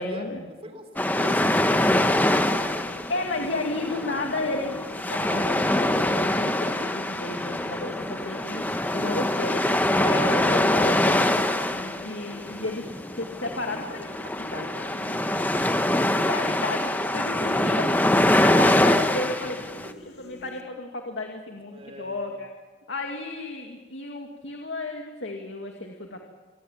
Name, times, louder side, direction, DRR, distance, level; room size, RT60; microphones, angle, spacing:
voice 1, 0.0-0.5 3.1-4.8 5.1-12.9 13.2-14.1 14.4-15.8 16.2-19.9 20.2-22.5 22.9-26.2, left 2 dB, 90° left, 2 dB, 2.4 m, -33 dB
voice 2, 0.6-2.9 17.1-18.0 19.1-19.4 19.8-19.9 21.6-22.2, equal, 35° right, 6 dB, 4.0 m, -41 dB
sound 1, 1.0-19.9, left 1 dB, 10° left, 1.0 m, -24 dB
sound 2, 1.6-20.6, left 1 dB, 65° left, 2.6 m, -46 dB
27.0 x 20.0 x 7.4 m, 1.2 s
head